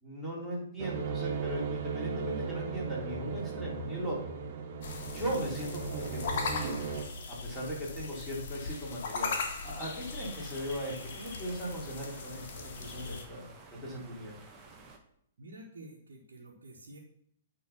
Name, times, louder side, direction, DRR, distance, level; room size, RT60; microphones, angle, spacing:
voice 1, 0.0-4.4 5.1-6.8 7.3-9.3 9.6-13.5 13.8-14.4, right 1 dB, 5° right, -7 dB, 3.9 m, -38 dB
sound 1, 0.8-7.0, right 5 dB, 45° right, 1.1 m, -37 dB
sound 2, 4.8-13.3, left 4 dB, 50° left, 1.5 m, -39 dB
sound 3, 9.8-15.0, right 3 dB, 20° right, 1.4 m, -53 dB
voice 2, 15.4-17.0, right 1 dB, 65° right, -5 dB, 1.7 m, -49 dB
9.5 x 3.8 x 5.9 m, 0.69 s
figure-of-eight pair, 115°, 0 cm